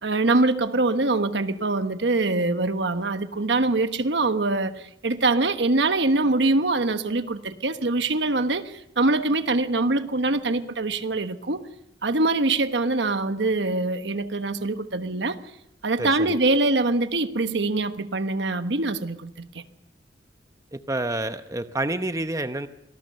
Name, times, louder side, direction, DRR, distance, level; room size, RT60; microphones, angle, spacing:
voice 1, 0.0-11.7 12.0-15.4 15.8-19.6, right 2 dB, 75° right, 1.2 m, -24 dB
voice 2, 16.0-16.4 20.7-22.7, right 2 dB, 20° right, 0.9 m, -28 dB
26.0 x 19.0 x 6.7 m
head